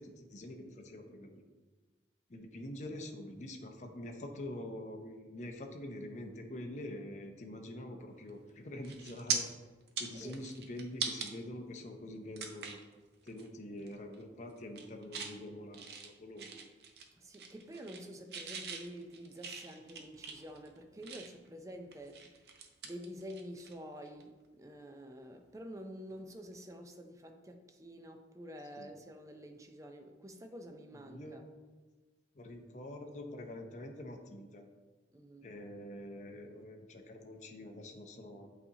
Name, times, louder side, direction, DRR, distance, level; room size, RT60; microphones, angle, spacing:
voice 1, 0.0-1.4 2.3-9.5 10.0-12.8 13.2-16.6 28.8-28.9 30.9-31.5 32.3-34.6 35.4-38.5, left 1 dB, 40° left, 0.5 m, -45 dB
sound 1, 8.3-8.5 8.8-9.4 9.8-11.3 11.8-11.9 12.4-12.9 13.3-13.5 13.8-14.2 14.6-15.3 15.7-17.1 17.3-18.0 18.3-21.5 21.9-23.7 24.0-24.2 26.1-26.3, right 6 dB, 65° right, 0.6 m, -41 dB
voice 2, 17.2-31.5 35.1-35.5, equal, 15° right, 0.5 m, -48 dB
8.2 x 4.1 x 2.8 m
head